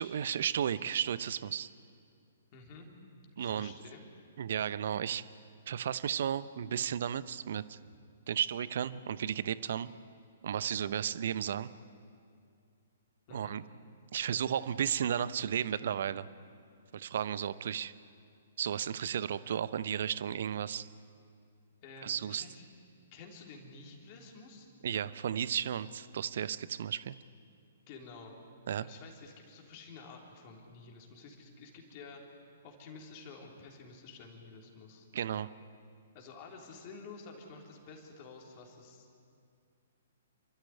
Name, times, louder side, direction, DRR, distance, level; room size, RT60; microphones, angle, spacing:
voice 1, 0.0-1.7 3.4-3.7 4.4-5.2 5.7-7.8 8.3-9.9 10.4-11.7 13.3-13.6 14.1-16.3 16.9-17.9 18.6-20.9 22.0-22.4 24.8-27.1 28.7-28.9 35.1-35.5, right 9 dB, 55° right, 16 dB, 0.7 m, -33 dB
voice 2, 2.5-2.9 3.4-4.1 13.3-13.6 21.8-22.7 23.1-24.7 27.9-28.3 28.8-35.1 36.1-39.1, left 4 dB, 35° left, 1 dB, 3.5 m, -50 dB
28.5 x 13.0 x 9.7 m, 2.3 s
figure-of-eight pair, 120°, 0 cm